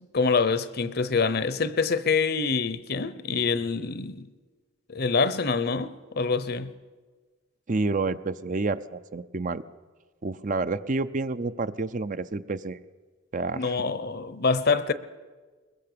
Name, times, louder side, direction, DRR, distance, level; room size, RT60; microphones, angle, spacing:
voice 1, 0.1-4.3 4.9-6.7 13.5-14.9, left 4 dB, 50° left, 0.9 m, -25 dB
voice 2, 7.7-9.6 10.2-12.8 13.3-13.8, right 3 dB, 40° right, 0.6 m, -29 dB
21.5 x 21.5 x 6.8 m
head